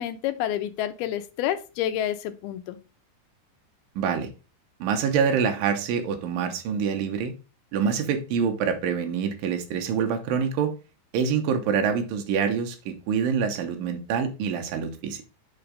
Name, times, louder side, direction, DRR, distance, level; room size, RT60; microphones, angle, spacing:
voice 1, 0.0-2.8, left 11 dB, 85° left, 10 dB, 2.6 m, -29 dB
voice 2, 4.0-4.3 4.8-7.3 7.7-10.7 11.1-15.2, right 6 dB, 75° right, 5 dB, 2.5 m, -26 dB
5.9 x 4.5 x 5.1 m, 0.32 s
omnidirectional pair, 4.4 m